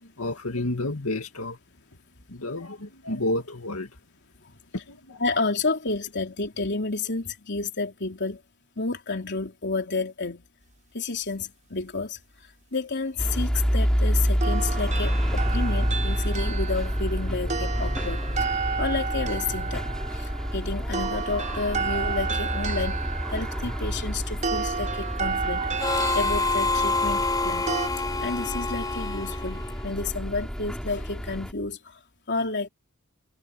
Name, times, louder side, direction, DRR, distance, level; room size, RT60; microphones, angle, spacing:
voice 1, 0.2-1.6 2.3-3.9 4.9-5.2, left 1 dB, 80° left, 2.2 m, -30 dB
voice 2, 5.2-8.4 8.8-10.4 10.9-12.2 12.7-23.0 23.3-27.7 27.9-32.0 32.3-32.7, left 3 dB, 55° left, 3.7 m, -31 dB
sound 1, 13.2-31.5, equal, 5° left, 7.0 m, -28 dB
sound 2, 14.4-27.9, right 5 dB, 35° right, 5.1 m, -32 dB
Harmonica, 25.8-30.3, left 3 dB, 20° left, 4.5 m, -27 dB
head